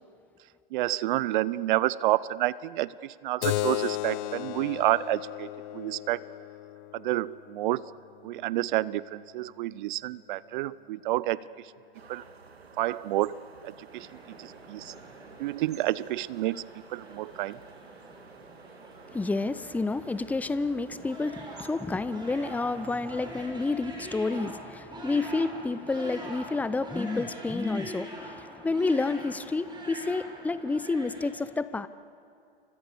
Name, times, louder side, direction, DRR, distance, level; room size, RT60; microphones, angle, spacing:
voice 1, 0.7-6.3 6.9-7.9 8.2-11.7 12.1-12.3 12.8-14.1 14.4-14.9 15.4-16.6 16.9-17.6, right 16 dB, 55° right, 20 dB, 0.6 m, -29 dB
Keyboard (musical), 3.4-8.5, left 19 dB, 50° left, 0.6 m, -35 dB
sound 1, 11.9-23.5, right 5 dB, 90° right, 1.7 m, -52 dB
sound 2, 13.9-31.3, right 1 dB, 15° right, 6.2 m, -44 dB
voice 2, 19.1-31.9, left 3 dB, 5° left, 16 dB, 0.6 m, -30 dB
29.5 x 25.0 x 7.0 m, 2.5 s
hypercardioid pair, 105°, 30 cm